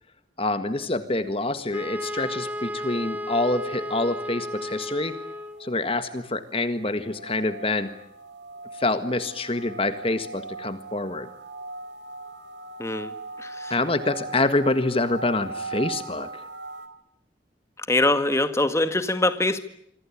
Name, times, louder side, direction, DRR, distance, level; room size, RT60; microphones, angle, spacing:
voice 1, 0.4-5.1 5.6-7.9 8.8-11.3 13.7-16.3, left 2 dB, 30° left, 10 dB, 1.7 m, -26 dB
sound 1, 0.7-16.9, right 3 dB, 80° right, 3.9 m, -41 dB
Wind instrument woodwind instrument, 1.7-5.7, equal, 10° right, 2.4 m, -34 dB
voice 2, 12.8-13.1 17.9-19.6, left 2 dB, 15° left, 9 dB, 1.8 m, -22 dB
27.5 x 24.5 x 8.7 m, 0.71 s
head